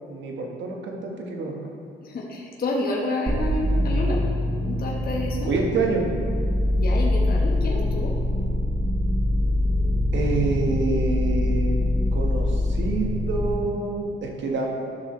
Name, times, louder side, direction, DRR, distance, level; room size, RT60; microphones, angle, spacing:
voice 1, 0.0-1.5 5.5-6.1 10.1-11.8 12.1-14.7, right 3 dB, 70° right, 1 dB, 1.4 m, -27 dB
voice 2, 2.0-4.2 4.7-5.5 6.7-8.2, left 2 dB, 50° left, -2 dB, 1.2 m, -29 dB
sound 1, 3.3-13.5, left 1 dB, 25° right, 0.9 m, -24 dB
12.0 x 6.3 x 3.2 m, 2.3 s
cardioid pair, 90°, 20 cm